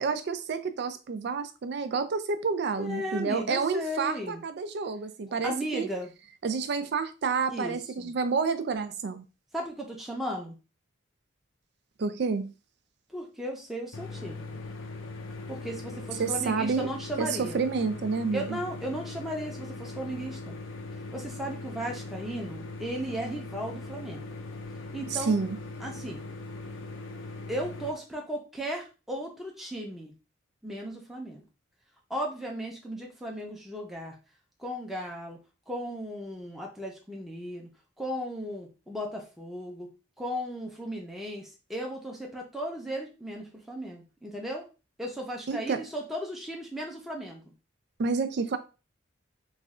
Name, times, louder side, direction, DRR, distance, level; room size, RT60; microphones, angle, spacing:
voice 1, 0.0-5.9 6.4-9.2 12.0-12.5 16.2-16.9 17.2-18.6 25.1-25.6 45.5-45.8 48.0-48.6, right 5 dB, 55° right, 9 dB, 0.4 m, -29 dB
voice 2, 2.8-4.4 5.4-6.1 7.5-8.1 9.5-10.6 13.1-14.5 15.5-17.6 18.3-20.6 21.1-24.3 24.9-25.4 25.8-26.2 27.5-30.1 30.6-31.4 32.1-34.1 34.6-35.4 35.7-37.7 38.0-39.9 40.2-44.7 45.0-47.4, equal, ahead, -1 dB, 0.6 m, -36 dB
sound 1, 13.9-27.9, left 3 dB, 85° left, 0.6 m, -40 dB
3.1 x 2.4 x 3.6 m, 0.31 s
head